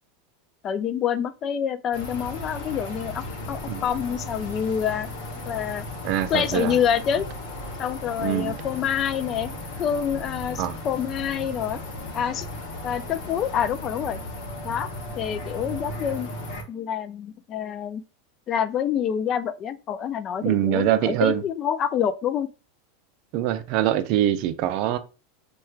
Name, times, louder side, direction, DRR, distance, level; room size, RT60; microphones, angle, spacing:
voice 1, 0.6-5.1 5.5-5.9 6.3-7.3 7.8-11.8 12.1-12.5 12.8-14.2 14.6-14.9 15.2-16.3 16.7-18.0 18.5-22.5, left 8 dB, 35° left, 0.3 m, -27 dB
sound 1, 1.9-16.6, left 1 dB, 65° left, 0.8 m, -36 dB
voice 2, 6.0-6.7 8.2-8.6 10.6-10.7 20.4-21.4 23.3-25.0, right 12 dB, 50° right, 0.4 m, -23 dB
4.3 x 2.2 x 2.4 m
supercardioid pair, 135°, 0 cm